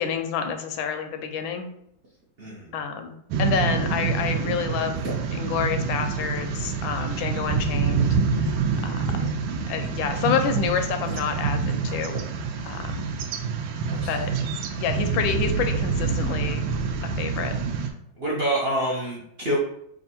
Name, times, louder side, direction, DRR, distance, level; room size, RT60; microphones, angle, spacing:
voice 1, 0.0-1.7 2.7-5.0 5.3-8.2 8.8-9.3 9.7-12.2 12.7-13.1 14.1-14.3 14.8-16.6 17.2-17.5, left 6 dB, 85° left, 6 dB, 1.3 m, -28 dB
sound 1, 3.3-17.9, right 5 dB, 80° right, 1.2 m, -27 dB
voice 2, 18.2-19.6, right 1 dB, 60° right, -5 dB, 0.6 m, -27 dB
3.5 x 2.5 x 4.1 m, 0.74 s
omnidirectional pair, 2.1 m